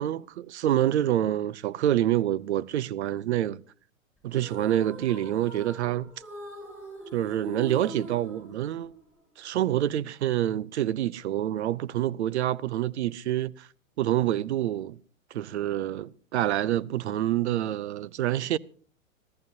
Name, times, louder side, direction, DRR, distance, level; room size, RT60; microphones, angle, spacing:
voice 1, 0.0-3.6 4.2-6.1 7.1-9.0 9.4-13.7 14.0-15.0 15.3-18.6, right 12 dB, 55° right, 0.6 m, -27 dB
sound 1, 4.3-9.2, equal, ahead, 7.2 m, -43 dB
25.5 x 14.5 x 2.7 m
figure-of-eight pair, 115°, 41 cm